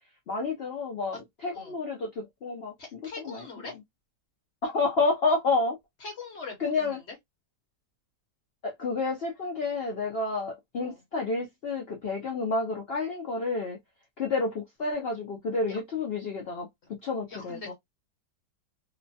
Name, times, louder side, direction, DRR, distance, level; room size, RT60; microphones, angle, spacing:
voice 1, 0.3-3.4 4.6-5.8 6.6-7.0 8.6-13.8 14.2-16.7 17.0-17.7, left 3 dB, 75° left, 0.5 m, -30 dB
voice 2, 2.8-3.7 6.0-7.1 10.8-11.0 15.7-15.8 17.3-17.7, left 3 dB, 45° left, 1.1 m, -42 dB
2.9 x 2.2 x 2.6 m
omnidirectional pair, 1.8 m